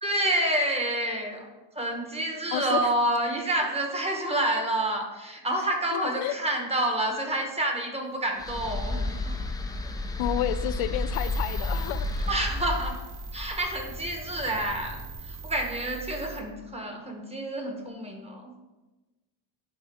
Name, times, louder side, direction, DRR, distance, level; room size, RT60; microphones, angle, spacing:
voice 1, 0.0-1.5 1.7-9.4 12.3-13.0 13.3-18.5, right 1 dB, 15° right, 2 dB, 1.1 m, -28 dB
voice 2, 2.5-2.9 5.9-6.4 10.2-12.1, left 12 dB, 85° left, 12 dB, 0.6 m, -30 dB
sound 1, 8.4-15.5, left 2 dB, 10° left, 0.4 m, -32 dB
sound 2, 11.1-16.4, right 7 dB, 60° right, 1.4 m, -43 dB
12.0 x 3.9 x 3.6 m, 1.1 s
cardioid pair, 145°, 45 cm